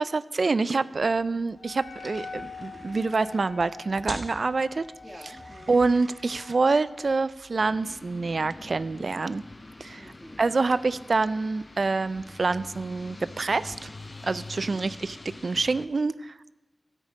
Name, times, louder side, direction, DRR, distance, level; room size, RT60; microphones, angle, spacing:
voice 1, 0.0-4.8 5.7-9.4 9.8-10.0 10.4-13.9 14.2-15.2 15.4-16.5, right 3 dB, 65° right, 16 dB, 0.4 m, -26 dB
sound 1, 1.0-16.0, right 1 dB, 50° right, 1.4 m, -49 dB
Wind instrument woodwind instrument, 1.5-7.3, left 4 dB, 85° left, 1.1 m, -45 dB
voice 2, 5.0-5.8 10.0-10.5 14.5-14.9, equal, 5° right, 2 dB, 2.1 m, -48 dB
sound 2, 7.6-15.9, left 2 dB, 40° left, 0.6 m, -45 dB
13.5 x 5.4 x 8.4 m, 1.1 s
cardioid pair, 40°, 0 cm